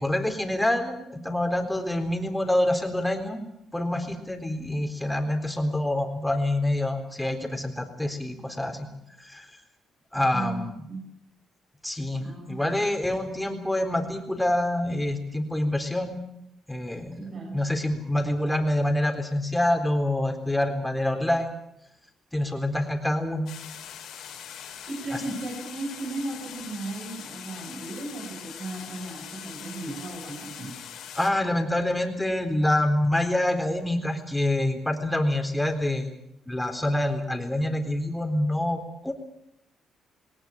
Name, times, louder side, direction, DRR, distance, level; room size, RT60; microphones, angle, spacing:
voice 1, 0.0-3.4 3.7-8.9 9.2-9.5 10.1-10.8 11.8-16.2 16.7-17.3 17.5-21.6 22.3-23.5 25.1-25.2 31.1-36.1 36.5-39.1, left 1 dB, 5° left, 5 dB, 3.9 m, -26 dB
voice 2, 10.1-11.0 12.1-12.7 17.2-17.6 24.9-30.8, right 2 dB, 50° right, 0 dB, 5.9 m, -36 dB
sound 1, 23.5-31.3, left 9 dB, 80° left, 4.0 m, -42 dB
19.5 x 19.0 x 8.6 m, 0.81 s
cardioid pair, 90°, 0 cm